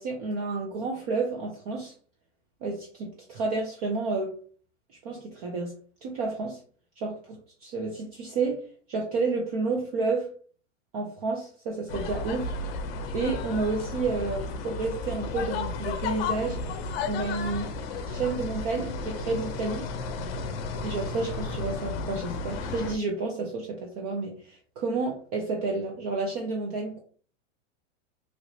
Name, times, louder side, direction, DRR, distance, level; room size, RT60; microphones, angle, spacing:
voice 1, 0.0-1.9 2.6-4.4 5.0-5.7 6.0-6.6 7.0-10.3 10.9-12.5 13.1-16.6 17.1-17.7 18.0-19.9 20.8-27.0, right 3 dB, 30° right, 0.4 m, -30 dB
sound 1, 11.9-23.0, left 4 dB, 50° left, 0.6 m, -33 dB
3.1 x 2.9 x 2.7 m
supercardioid pair, 160°, 39 cm